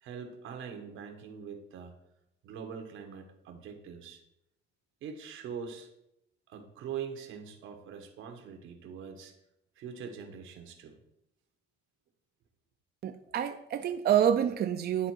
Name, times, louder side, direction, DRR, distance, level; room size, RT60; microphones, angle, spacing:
voice 1, 0.0-1.9 2.4-4.2 5.0-5.9 6.5-9.3 9.8-11.0, right 7 dB, 85° right, 6 dB, 1.1 m, -43 dB
voice 2, 13.0-15.1, right 9 dB, 50° right, 7 dB, 0.5 m, -27 dB
10.0 x 3.7 x 4.5 m, 0.82 s
cardioid pair, 90°, 20 cm